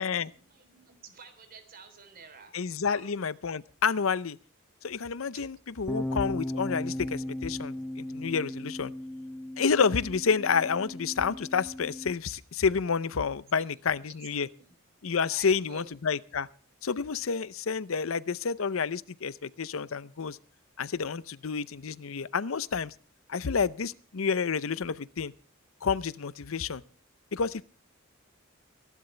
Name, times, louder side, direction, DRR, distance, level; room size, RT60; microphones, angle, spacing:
voice 1, 0.0-2.6 2.8-3.1 5.3-5.4 13.6-13.7 14.1-14.8 15.3-15.9, right 4 dB, 45° right, 3.5 m, -50 dB
voice 2, 2.5-4.4 4.8-8.9 9.6-14.5 15.0-16.5 16.8-20.4 20.8-22.9 23.3-25.3 25.8-26.8 27.3-27.6, left 5 dB, 75° left, 0.6 m, -29 dB
sound 1, 5.9-12.1, left 1 dB, 5° left, 0.9 m, -36 dB
23.5 x 12.0 x 3.3 m
head